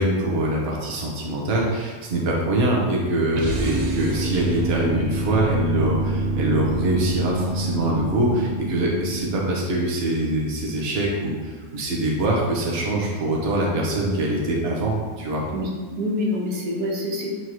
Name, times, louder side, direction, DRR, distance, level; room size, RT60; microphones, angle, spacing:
voice 1, 0.0-15.4, right 1 dB, 45° right, -2 dB, 1.2 m, -24 dB
sound 1, 3.3-9.8, right 1 dB, 75° right, 0.3 m, -26 dB
voice 2, 15.5-17.4, left 1 dB, 90° right, -3 dB, 1.7 m, -26 dB
9.0 x 3.6 x 3.1 m, 1.5 s
omnidirectional pair, 1.6 m